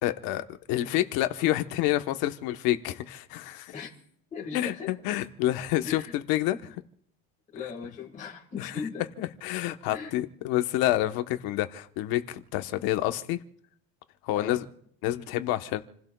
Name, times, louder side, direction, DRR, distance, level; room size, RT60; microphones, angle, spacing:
voice 1, 0.0-3.7 4.5-6.8 8.6-8.7 9.2-13.4 14.2-14.6 15.0-15.8, left 14 dB, 60° left, 1.1 m, -28 dB
voice 2, 4.3-5.0 5.8-6.1 7.5-9.1 9.9-10.2 14.3-14.6, left 5 dB, 15° left, 1.8 m, -38 dB
29.0 x 16.5 x 2.3 m
cardioid pair, 175°, 41 cm